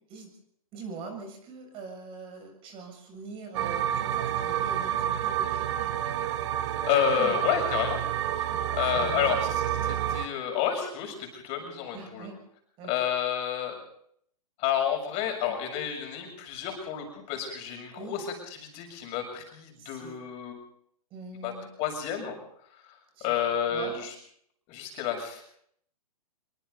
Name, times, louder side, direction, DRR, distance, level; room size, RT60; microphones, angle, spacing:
voice 1, 0.7-5.9 7.2-7.3 8.5-9.4 11.5-11.7 11.9-12.4 12.8-13.0 18.0-18.2 19.8-20.2 21.1-21.7 23.1-23.3 23.7-24.0, right 4 dB, 30° right, 4 dB, 6.9 m, -43 dB
sound 1, 3.5-10.3, right 11 dB, 50° right, 1.8 m, -29 dB
voice 2, 6.8-8.0 8.7-12.3 12.9-13.8 14.6-20.6 21.4-21.5 21.8-22.4 23.2-24.1 24.7-25.4, left 8 dB, 35° left, 2 dB, 7.0 m, -30 dB
26.5 x 24.0 x 4.2 m, 0.68 s
hypercardioid pair, 135°, 20 cm